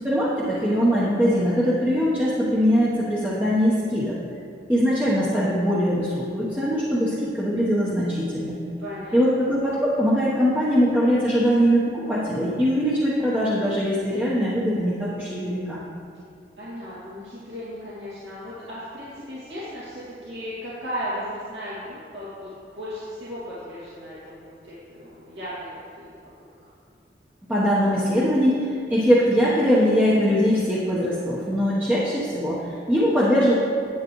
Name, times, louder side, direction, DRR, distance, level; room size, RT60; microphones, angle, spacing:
voice 1, 0.0-4.1 4.7-8.6 9.1-15.8 27.5-33.5, equal, 10° right, -8 dB, 1.0 m, -21 dB
voice 2, 8.8-9.2 16.5-26.2 26.6-26.7, equal, 75° right, -11 dB, 2.2 m, -36 dB
10.5 x 9.1 x 3.1 m, 2.4 s
head